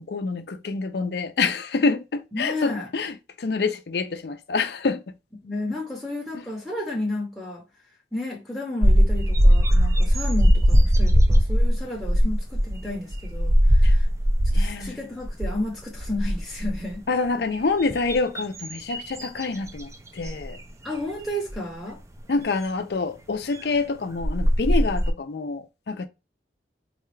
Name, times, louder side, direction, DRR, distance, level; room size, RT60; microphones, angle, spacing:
voice 1, 0.0-5.0 13.8-13.9 14.5-15.0 17.1-20.6 22.3-26.1, left 4 dB, 60° left, 0.5 m, -27 dB
voice 2, 2.3-2.9 5.4-7.6 8.1-14.1 14.5-17.0 20.8-22.0, left 1 dB, ahead, 0.7 m, -32 dB
sound 1, 8.8-14.9 15.2-15.6 15.9-16.9 17.6-19.8 20.2-20.5 21.5-21.6 23.8-23.9 24.2-25.1, equal, 15° right, 0.3 m, -19 dB
4.0 x 2.3 x 3.2 m
head